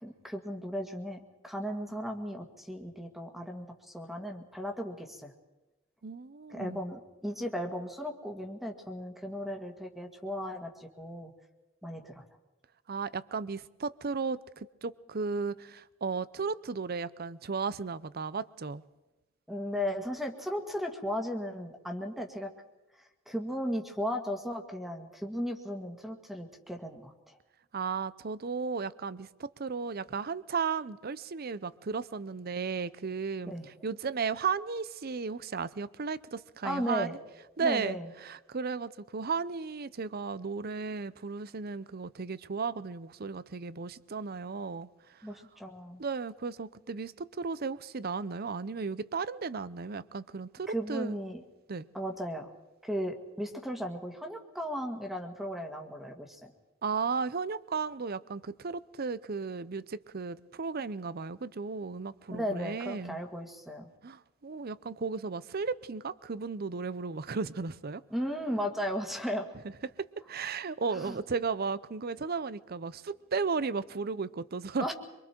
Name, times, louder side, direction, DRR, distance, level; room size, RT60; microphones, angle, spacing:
voice 1, 0.0-3.7 3.9-5.3 6.5-11.3 11.8-12.2 19.5-22.5 23.0-27.4 33.5-33.7 36.6-37.2 37.6-38.1 45.2-46.0 50.7-51.4 51.9-52.5 52.8-56.5 62.3-63.9 68.1-69.5 70.9-71.2 74.8-74.9, equal, ahead, 1.8 m, -36 dB
voice 2, 6.0-6.8 12.9-18.8 27.7-33.5 33.8-37.1 37.6-45.2 46.0-51.2 51.7-51.9 56.8-63.2 64.0-68.0 70.0-74.9, right 5 dB, 50° right, 0.7 m, -35 dB
25.0 x 24.0 x 4.5 m
head